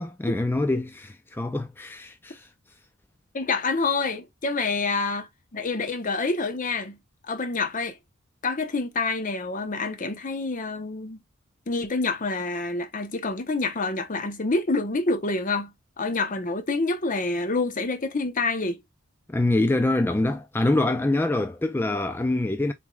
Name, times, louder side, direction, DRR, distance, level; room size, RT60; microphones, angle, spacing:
voice 1, 0.0-2.5 19.3-22.7, left 2 dB, 10° left, 0.4 m, -25 dB
voice 2, 3.3-7.0 7.2-8.0 8.4-11.2 11.7-18.8, left 3 dB, 40° left, 0.8 m, -27 dB
7.0 x 3.1 x 2.2 m
head